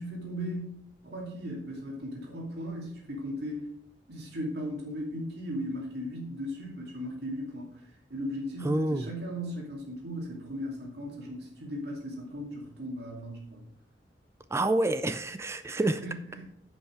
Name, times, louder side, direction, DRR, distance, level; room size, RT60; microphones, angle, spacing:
voice 1, 0.0-3.7 4.1-13.7 15.7-16.4, equal, 60° right, -2 dB, 2.5 m, -37 dB
voice 2, 8.6-9.1 14.5-16.0, right 2 dB, 15° right, 11 dB, 0.3 m, -27 dB
10.5 x 5.5 x 4.9 m, 0.74 s
head